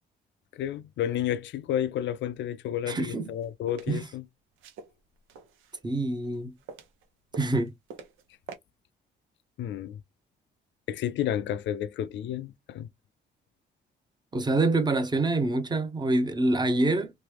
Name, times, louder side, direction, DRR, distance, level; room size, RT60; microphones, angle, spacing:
voice 1, 0.5-4.2 9.6-10.0 10.9-12.9, left 10 dB, 65° left, 0.4 m, -31 dB
voice 2, 2.9-3.2 3.9-4.0 5.8-6.5 7.4-7.7 14.3-17.1, right 2 dB, 20° right, 0.8 m, -25 dB
sound 1, 3.2-3.9 4.6-5.8 6.2-7.1 7.3-8.2 8.5-8.6, right 6 dB, 90° right, 0.6 m, -45 dB
3.0 x 2.1 x 3.4 m
cardioid pair, 90°, 20 cm